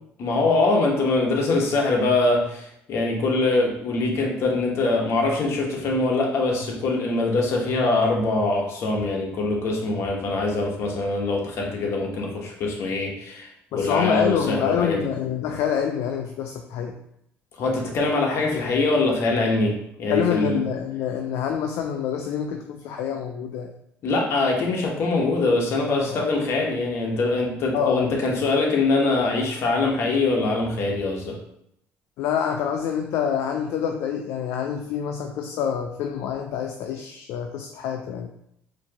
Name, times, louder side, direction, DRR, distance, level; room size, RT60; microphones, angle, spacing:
voice 1, 0.2-15.1 17.6-20.6 24.0-31.4, left 3 dB, 60° left, 0 dB, 1.0 m, -23 dB
voice 2, 13.7-16.9 20.1-23.7 25.9-26.2 27.7-28.1 32.2-38.3, left 8 dB, 75° left, 4 dB, 0.3 m, -26 dB
4.3 x 2.8 x 2.8 m, 0.76 s
cardioid pair, 110°, 5 cm